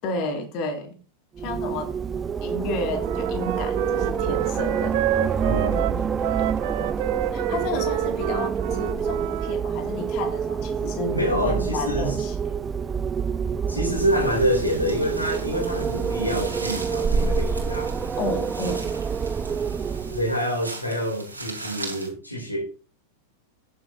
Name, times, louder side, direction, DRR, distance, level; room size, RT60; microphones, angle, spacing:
voice 1, 0.0-1.0 1.4-2.0 2.4-5.0 5.7-6.1 6.8-7.0 7.3-12.6 18.2-19.0, left 2 dB, 40° left, 2.2 m, -32 dB
Wind, 1.4-20.4, right 6 dB, 20° right, 0.6 m, -27 dB
Wind instrument woodwind instrument, 3.0-9.5, right 13 dB, 50° right, 0.9 m, -29 dB
voice 2, 5.4-6.1 11.1-12.2 13.7-18.2 20.1-22.6, equal, 85° left, 2.7 m, -27 dB
sound 1, 13.9-22.1, right 2 dB, 85° right, 3.5 m, -39 dB
21.5 x 7.5 x 2.6 m
figure-of-eight pair, 90°, 0 cm